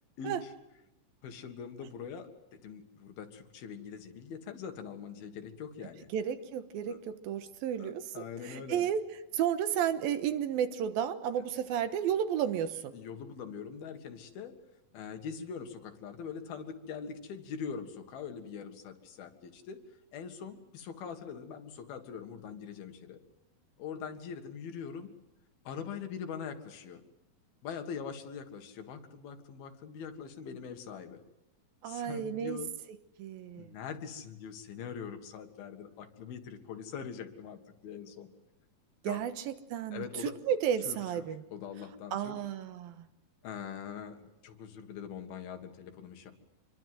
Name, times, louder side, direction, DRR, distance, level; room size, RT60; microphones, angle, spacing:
voice 1, 0.2-0.5 1.2-6.1 6.9-7.0 7.8-8.9 11.4-11.5 12.9-14.6 14.9-19.8 20.1-23.2 23.8-25.1 25.7-27.0 27.6-31.2 31.9-32.7 33.6-38.3 39.1-39.2 39.9-40.4 40.9-42.4 43.4-46.3, left 6 dB, 90° left, 6 dB, 3.7 m, -43 dB
voice 2, 6.1-9.0 9.3-12.9 31.8-32.6 33.2-33.7 39.0-41.4 42.1-43.0, right 9 dB, 80° right, 10 dB, 3.0 m, -32 dB
26.5 x 22.5 x 7.8 m, 0.89 s
omnidirectional pair, 4.2 m